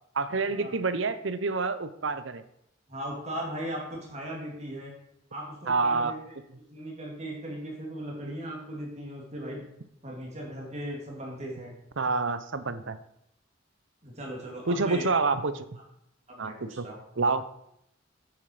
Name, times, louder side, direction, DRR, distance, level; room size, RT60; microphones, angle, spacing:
voice 1, 0.1-2.4 5.7-6.1 12.0-13.0 14.7-15.6 16.4-16.8 17.2-17.4, right 4 dB, 75° right, 13 dB, 0.8 m, -27 dB
voice 2, 2.9-4.9 5.3-6.4 6.7-9.6 10.0-11.7 14.0-15.0 16.3-17.0, right 1 dB, 35° right, -1 dB, 3.3 m, -38 dB
9.1 x 8.9 x 5.0 m, 0.77 s
head